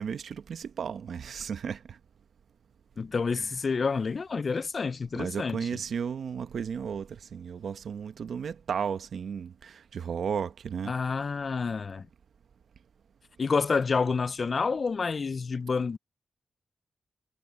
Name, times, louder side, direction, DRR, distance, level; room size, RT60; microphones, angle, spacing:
voice 1, 0.0-2.0 3.4-3.5 5.2-10.9, right 7 dB, 80° right, 1.1 m, -34 dB
voice 2, 3.0-5.7 10.9-12.0 13.4-16.0, left 5 dB, 55° left, 0.4 m, -28 dB
cardioid pair, 65°, 0 cm